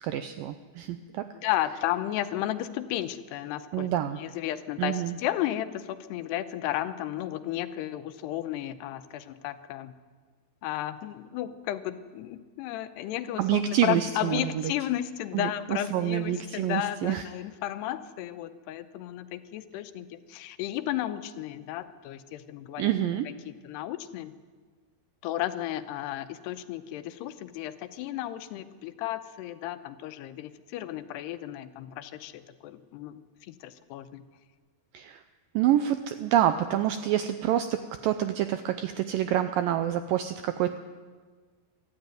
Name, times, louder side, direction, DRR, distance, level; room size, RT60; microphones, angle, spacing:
voice 1, 0.0-1.2 3.7-4.2 4.8-5.2 13.4-14.7 15.3-17.2 22.8-23.3 34.9-35.2 35.6-40.8, right 11 dB, 80° right, 9 dB, 2.0 m, -27 dB
voice 2, 1.3-3.9 4.1-9.9 10.6-23.0 23.3-24.3 25.2-34.3, left 13 dB, 85° left, 10 dB, 2.9 m, -33 dB
23.5 x 13.0 x 9.3 m, 1.5 s
omnidirectional pair, 4.7 m